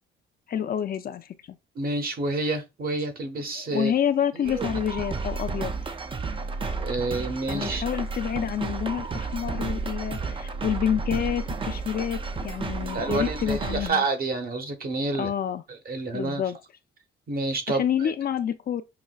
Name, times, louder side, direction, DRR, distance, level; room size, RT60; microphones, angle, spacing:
voice 1, 0.5-1.3 3.7-5.7 7.5-14.0 15.2-15.6 16.1-16.6 17.7-18.8, left 9 dB, 50° left, 0.5 m, -28 dB
voice 2, 1.7-3.9 4.3-4.8 6.8-7.8 12.9-15.3 15.7-16.4 17.3-18.1, right 3 dB, 50° right, 1.0 m, -29 dB
sound 1, 4.5-13.9, right 4 dB, 25° right, 0.5 m, -32 dB
5.8 x 2.1 x 2.4 m
cardioid pair, 90°, 20 cm